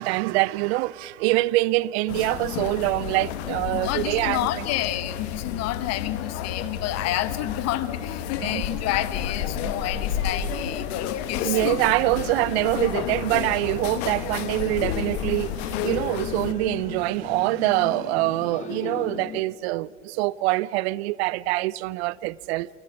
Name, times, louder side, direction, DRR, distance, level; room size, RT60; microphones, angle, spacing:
voice 1, 0.0-4.7 8.4-8.7 11.4-22.7, right 19 dB, 55° right, 0.6 m, -25 dB
sound 1, 2.1-16.5, left 9 dB, 60° left, 1.7 m, -31 dB
voice 2, 3.7-11.8, left 13 dB, 45° left, 1.2 m, -29 dB
sound 2, 14.4-19.4, left 9 dB, 20° left, 0.6 m, -37 dB
25.5 x 19.0 x 6.0 m
hypercardioid pair, 90°, 37 cm